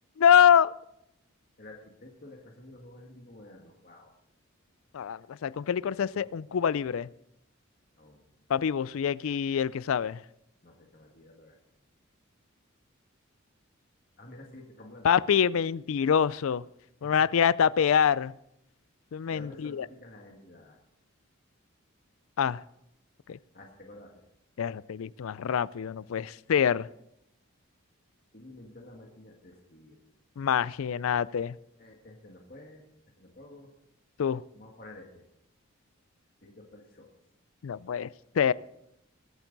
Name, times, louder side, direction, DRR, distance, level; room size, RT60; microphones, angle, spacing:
voice 1, 0.2-0.7 4.9-7.1 8.5-10.2 15.0-16.6 17.0-18.3 19.1-19.9 22.4-22.6 23.3-23.4 24.6-26.9 30.4-31.6 34.2-34.4 37.6-38.1 38.4-38.5, left 8 dB, 75° left, 0.4 m, -25 dB
voice 2, 1.6-4.1 6.1-6.3 8.0-8.2 10.6-11.6 14.2-15.1 17.0-17.1 19.3-20.8 23.5-24.2 28.3-30.0 31.8-32.8 33.2-33.7 34.5-35.2 36.4-37.1, left 1 dB, 45° left, 1.7 m, -50 dB
21.5 x 9.1 x 4.0 m
head